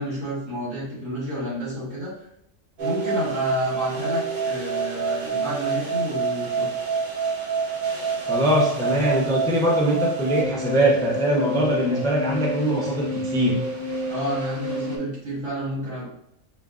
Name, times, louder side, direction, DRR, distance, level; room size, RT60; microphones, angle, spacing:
voice 1, 0.0-2.3 2.8-6.7 14.1-16.1, equal, 85° right, -6 dB, 2.0 m, -30 dB
sound 1, 2.8-15.0, right 4 dB, 50° right, 0.8 m, -28 dB
voice 2, 8.3-13.6, equal, 5° left, -3 dB, 0.3 m, -22 dB
5.1 x 2.2 x 2.4 m, 0.76 s
omnidirectional pair, 1.3 m